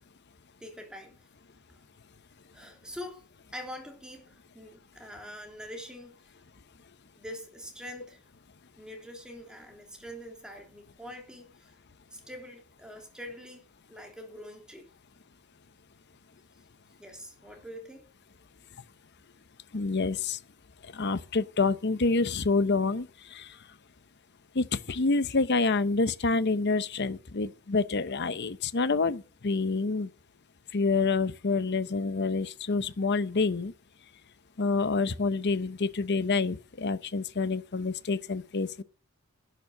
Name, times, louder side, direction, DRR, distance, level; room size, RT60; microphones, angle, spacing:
voice 1, 0.6-1.3 1.7-1.8 2.5-3.2 3.5-6.3 7.2-8.2 8.7-11.7 12.1-14.9 17.0-18.0, equal, 5° right, 3.3 m, -44 dB
voice 2, 19.7-20.4 20.9-23.5 24.5-30.1 30.7-33.7 34.6-38.8, left 3 dB, 50° left, 0.8 m, -27 dB
11.0 x 9.9 x 6.1 m
head